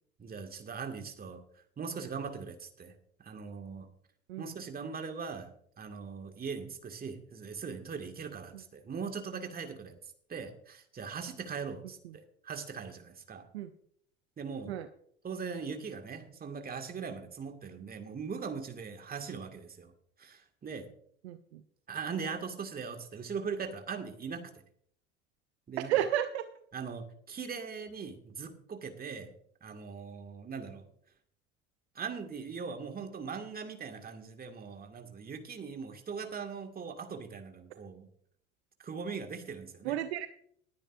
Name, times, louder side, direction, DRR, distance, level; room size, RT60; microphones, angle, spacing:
voice 1, 0.2-1.4 1.8-2.9 3.2-3.9 4.4-9.9 10.3-12.0 12.4-13.5 14.4-14.8 15.2-19.9 20.2-20.9 21.9-24.5 25.7-25.9 26.7-29.3 29.6-30.9 32.0-38.1 38.8-40.0, right 5 dB, 25° right, 5 dB, 2.1 m, -40 dB
voice 2, 21.2-21.6 25.9-26.4 39.8-40.3, right 11 dB, 65° right, 10 dB, 0.8 m, -32 dB
20.5 x 10.0 x 2.6 m, 0.64 s
figure-of-eight pair, 65°, 35 cm